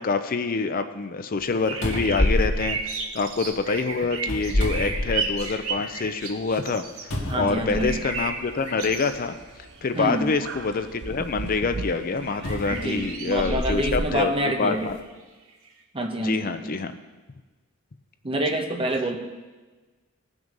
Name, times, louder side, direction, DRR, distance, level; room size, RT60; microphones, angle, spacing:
voice 1, 0.0-6.8 7.1-9.3 9.8-14.3 14.6-15.0 16.2-16.9 18.5-18.6, left 4 dB, 40° left, 9 dB, 0.5 m, -26 dB
sound 1, 1.4-1.5 1.8-3.5 4.2-5.6 6.0-6.1 7.1-8.2 9.2-9.3 12.4-14.1 14.8-14.9, left 1 dB, 60° left, 2.2 m, -27 dB
sound 2, 1.7-7.1 7.5-9.5 9.7-9.8 12.1-13.7 14.2-14.9 15.5-15.7, right 4 dB, 70° right, 1.4 m, -34 dB
voice 2, 7.3-8.0 9.9-10.3 12.7-14.9 15.9-16.8 18.2-19.2, right 1 dB, 25° right, 4 dB, 1.0 m, -27 dB
sound 3, 7.8-13.1, right 3 dB, 55° right, 0.6 m, -40 dB
18.0 x 6.1 x 5.3 m, 1.3 s
head